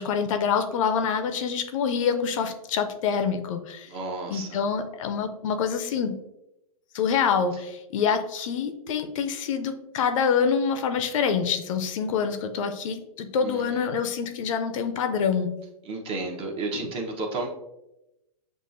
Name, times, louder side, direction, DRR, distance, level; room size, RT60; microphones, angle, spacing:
voice 1, 0.0-3.9 4.3-6.1 6.9-15.5, left 6 dB, 55° left, 7 dB, 0.5 m, -26 dB
voice 2, 3.9-4.6 13.4-13.9 15.8-17.5, right 3 dB, 30° right, 2 dB, 0.8 m, -32 dB
6.5 x 2.4 x 2.6 m, 0.91 s
hypercardioid pair, 120°, 19 cm